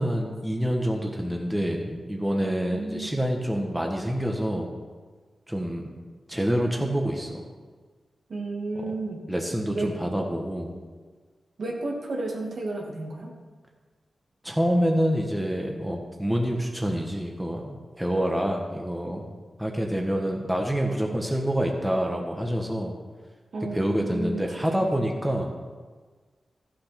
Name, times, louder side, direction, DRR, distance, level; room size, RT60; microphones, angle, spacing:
voice 1, 0.0-4.7 5.5-5.8 6.3-7.4 9.3-10.7 14.4-19.2 19.6-22.9 23.7-25.5, equal, 5° right, 1 dB, 1.4 m, -27 dB
voice 2, 2.4-3.1 8.3-9.2 9.7-9.9 11.6-13.3 23.5-24.9, right 2 dB, 65° right, 0 dB, 2.3 m, -32 dB
14.0 x 7.7 x 6.0 m, 1.5 s
wide cardioid pair, 100°, 0 cm